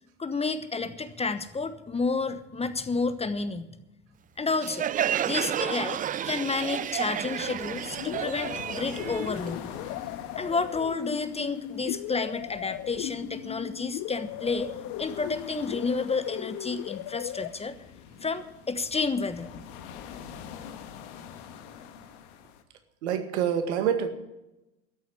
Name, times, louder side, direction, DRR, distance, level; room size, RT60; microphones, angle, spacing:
voice 1, 0.2-3.7 4.4-4.9 5.2-6.0 6.2-9.6 10.4-14.7 15.0-17.7 18.2-19.5, left 4 dB, 15° left, 11 dB, 1.1 m, -30 dB
Crowd, 4.6-10.1, right 10 dB, 25° right, 0.4 m, -31 dB
sound 1, 5.9-22.6, left 8 dB, 65° left, 1.5 m, -45 dB
sound 2, 8.0-17.5, left 14 dB, 50° left, 0.8 m, -37 dB
voice 2, 23.0-24.1, right 8 dB, 70° right, 8 dB, 2.0 m, -26 dB
13.5 x 7.8 x 9.9 m, 0.94 s
hypercardioid pair, 75°, 35 cm